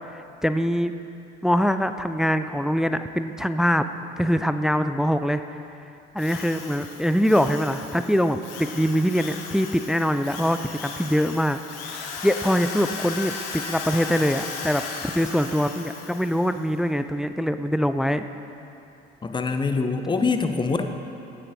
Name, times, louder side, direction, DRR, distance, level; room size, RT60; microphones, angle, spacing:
voice 1, 0.1-0.9 1.4-3.8 4.2-5.4 6.1-18.3, equal, ahead, 10 dB, 0.4 m, -23 dB
Drill, 6.2-16.6, left 5 dB, 60° left, 1.3 m, -36 dB
voice 2, 19.2-20.8, left 4 dB, 15° left, 7 dB, 0.8 m, -24 dB
16.0 x 10.5 x 3.8 m, 2.8 s
figure-of-eight pair, 50°, 30 cm